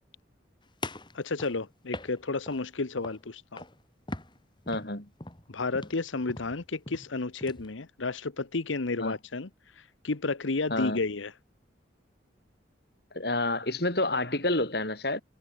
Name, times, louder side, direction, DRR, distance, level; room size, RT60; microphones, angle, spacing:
sound 1, 0.8-2.6 3.0-3.3 3.6-3.8 4.1-7.7, left 2 dB, 25° left, 2.2 m, -41 dB
voice 1, 1.1-3.6 5.5-9.5 10.0-11.3, left 3 dB, 85° left, 1.1 m, -31 dB
voice 2, 4.7-5.1 9.0-9.2 10.7-11.0 13.1-15.2, left 2 dB, 55° left, 4.3 m, -29 dB
head